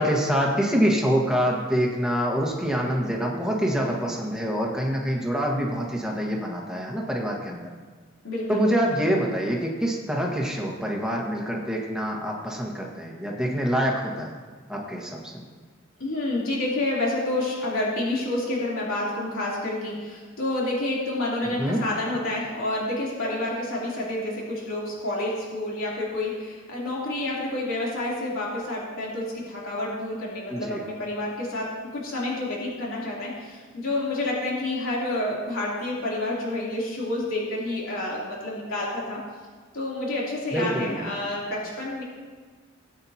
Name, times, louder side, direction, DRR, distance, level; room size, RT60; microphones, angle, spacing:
voice 1, 0.0-7.7 8.5-14.3 14.7-15.4 21.4-21.8 30.5-30.8 40.5-41.0, equal, 5° right, -2 dB, 1.5 m, -26 dB
voice 2, 8.2-8.6 16.0-39.2 39.7-42.0, left 2 dB, 85° left, -6 dB, 3.2 m, -29 dB
19.0 x 8.8 x 2.9 m, 1.5 s
head